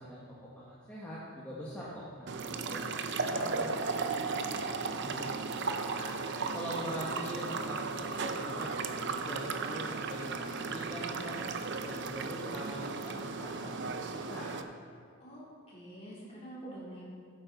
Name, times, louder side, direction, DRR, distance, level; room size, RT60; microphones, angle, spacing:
voice 1, 0.0-5.3 5.9-6.2 6.5-13.8 14.1-14.5, equal, 10° left, -8 dB, 1.4 m, -43 dB
sound 1, 2.3-14.6, right 4 dB, 50° right, 0.6 m, -35 dB
voice 2, 15.2-17.1, right 1 dB, 25° left, -7 dB, 3.5 m, -46 dB
15.0 x 9.0 x 4.1 m, 2.2 s
head